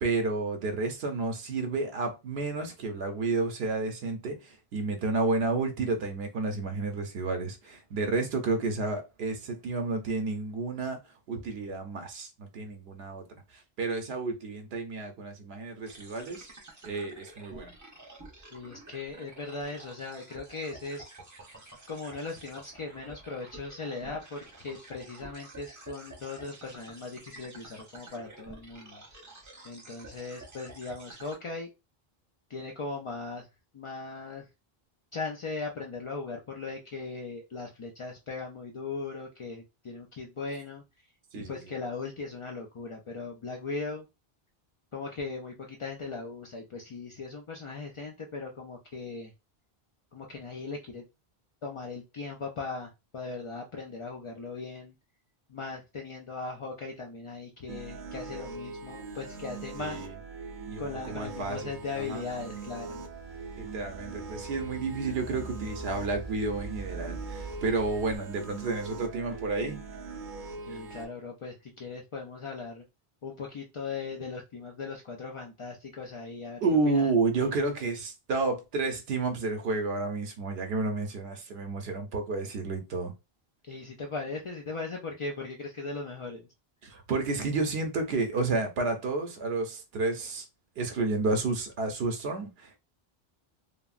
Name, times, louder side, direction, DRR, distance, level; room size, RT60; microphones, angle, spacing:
voice 1, 0.0-11.0 11.3-13.2 13.5-16.5 16.8-17.7 41.3-41.6 59.8-60.1 60.7-61.6 62.0-62.2 63.6-69.8 70.7-70.8 76.6-83.1 86.8-90.4 90.8-92.8, right 3 dB, 90° right, 0.8 m, -31 dB
sound 1, 15.9-31.4, right 2 dB, 20° right, 0.6 m, -50 dB
voice 2, 18.5-21.1 21.9-29.0 29.6-31.7 32.5-33.5 33.7-34.5 35.1-40.8 41.3-44.1 44.9-49.3 50.1-51.0 51.6-55.0 55.5-60.0 60.8-63.0 70.6-72.8 73.2-76.6 76.9-77.1 83.7-86.5, left 4 dB, 55° left, 0.3 m, -38 dB
sound 2, 57.7-71.1, right 4 dB, 60° right, 0.6 m, -42 dB
sound 3, 61.2-68.2, right 2 dB, 80° left, 1.4 m, -45 dB
3.3 x 2.0 x 2.4 m
omnidirectional pair, 1.0 m